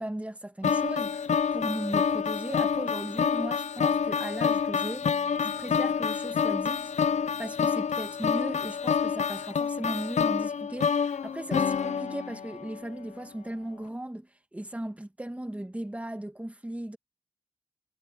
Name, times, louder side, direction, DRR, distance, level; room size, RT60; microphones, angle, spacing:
voice 1, 0.0-17.0, right 1 dB, 10° right, 2.0 m, -37 dB
sound 1, 0.6-12.8, left 6 dB, 65° left, 0.6 m, -28 dB
wide cardioid pair, 95°, 13 cm